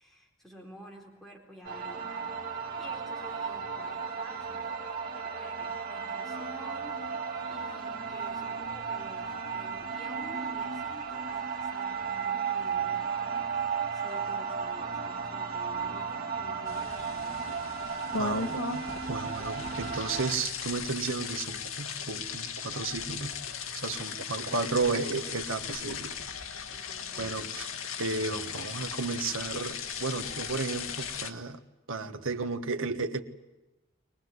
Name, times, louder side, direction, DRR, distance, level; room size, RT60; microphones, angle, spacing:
voice 1, 0.0-2.1 2.5-17.6 26.7-27.4, equal, ahead, -2 dB, 4.1 m, -51 dB
sound 1, 1.6-20.3, right 6 dB, 45° right, 2.2 m, -34 dB
sound 2, 16.7-31.3, left 6 dB, 85° left, 1.6 m, -37 dB
voice 2, 18.2-23.3 23.7-26.2 27.2-27.7 28.0-31.6 31.9-33.2, right 4 dB, 80° right, 8 dB, 1.5 m, -33 dB
23.5 x 19.5 x 9.6 m, 1.1 s
head